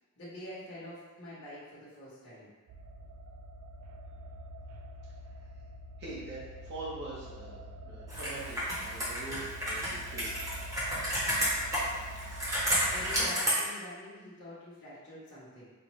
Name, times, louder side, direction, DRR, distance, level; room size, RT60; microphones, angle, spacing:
voice 1, 0.2-2.5 12.9-15.7, left 1 dB, 55° left, -11 dB, 1.0 m, -46 dB
sound 1, 2.7-13.2, equal, 90° right, 0.3 m, -45 dB
voice 2, 6.0-7.6 7.8-10.3, right 2 dB, 50° right, -8 dB, 0.8 m, -43 dB
Computer keyboard, 8.1-13.5, equal, 15° right, 0.9 m, -31 dB
4.3 x 2.2 x 3.0 m, 1.3 s
head